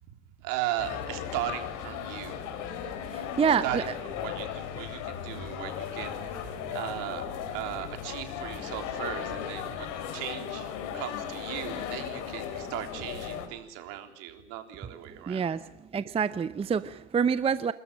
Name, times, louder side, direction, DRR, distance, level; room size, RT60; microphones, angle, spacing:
voice 1, 0.0-2.4 3.6-7.2 7.5-15.5, right 13 dB, 60° right, 6 dB, 3.7 m, -37 dB
sound 1, 0.8-13.5, left 8 dB, 55° left, 3.9 m, -36 dB
voice 2, 3.1-3.8 15.3-15.6 15.9-17.7, right 6 dB, 15° right, 14 dB, 0.7 m, -27 dB
28.5 x 13.5 x 8.7 m, 0.92 s
hypercardioid pair, 105°, 36 cm